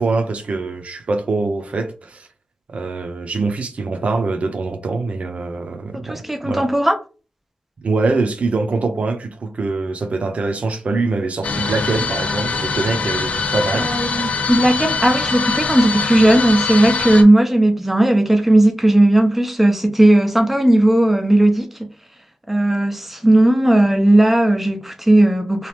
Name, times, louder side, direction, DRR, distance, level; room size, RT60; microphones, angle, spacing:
voice 1, 0.0-2.3 2.7-6.7 7.8-13.9, right 3 dB, 60° right, 0.6 m, -23 dB
voice 2, 6.0-7.0 13.7-21.7 22.5-25.7, right 1 dB, 10° right, 0.6 m, -15 dB
sound 1, 11.4-17.2, left 4 dB, 70° left, 0.5 m, -23 dB
2.9 x 2.4 x 3.3 m
wide cardioid pair, 120°, 3 cm